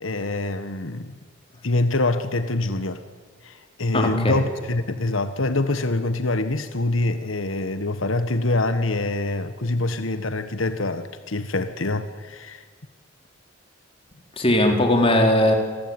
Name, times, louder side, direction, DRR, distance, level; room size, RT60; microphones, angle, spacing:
voice 1, 0.0-1.2 1.6-3.0 3.4-12.6, left 2 dB, 85° left, 1.5 m, -25 dB
voice 2, 3.9-4.4 14.4-15.5, left 1 dB, 30° left, 4.3 m, -19 dB
28.5 x 21.0 x 9.8 m
head